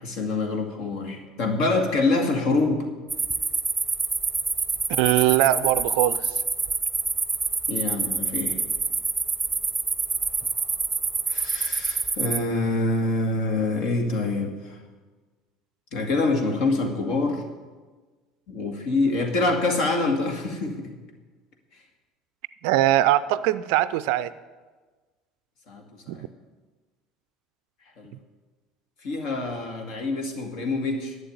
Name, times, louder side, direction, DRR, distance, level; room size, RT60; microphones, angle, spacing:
voice 1, 0.0-2.9 7.7-8.6 11.3-14.8 15.9-17.5 18.5-20.9 25.7-26.3 28.0-28.1 29.0-31.2, left 2 dB, 55° left, 4 dB, 2.0 m, -26 dB
sound 1, 3.1-12.4, right 4 dB, 15° right, 0.9 m, -27 dB
voice 2, 4.9-6.3 22.6-24.3 26.1-26.2, right 14 dB, 60° right, 16 dB, 0.4 m, -21 dB
11.5 x 8.1 x 7.9 m, 1.3 s
figure-of-eight pair, 65°, 0 cm